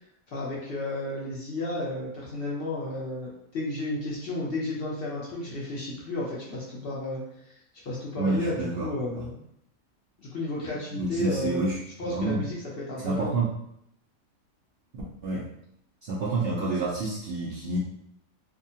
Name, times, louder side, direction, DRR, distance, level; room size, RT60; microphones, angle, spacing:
voice 1, 0.3-7.5 7.8-9.4 10.2-11.7 12.0-13.4, left 1 dB, 55° left, -5 dB, 0.7 m, -32 dB
voice 2, 8.2-8.9 9.2-9.3 10.9-11.8 12.1-12.5 13.0-13.5 14.9-15.5 16.0-17.8, right 3 dB, 65° right, -5 dB, 0.6 m, -28 dB
2.7 x 2.3 x 2.7 m, 0.74 s
omnidirectional pair, 1.4 m